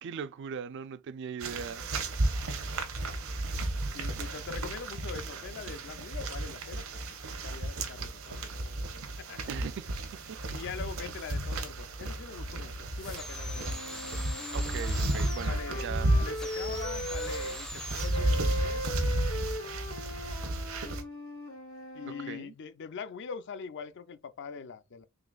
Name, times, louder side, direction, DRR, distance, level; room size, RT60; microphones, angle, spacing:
voice 1, 0.0-1.9 9.5-9.8 10.3-10.4 14.5-16.1 22.3-22.5, right 6 dB, 60° right, 0.3 m, -39 dB
sound 1, 1.4-21.0, right 1 dB, 85° right, 0.9 m, -33 dB
voice 2, 3.9-7.0 7.4-9.4 10.5-14.1 15.5-18.9 21.9-25.1, left 6 dB, 60° left, 0.5 m, -43 dB
sound 2, 13.0-15.6 16.3-18.3, left 1 dB, 5° left, 0.4 m, -43 dB
sound 3, 13.5-17.6 18.1-22.3, left 1 dB, 80° left, 1.1 m, -39 dB
3.9 x 3.3 x 2.3 m
head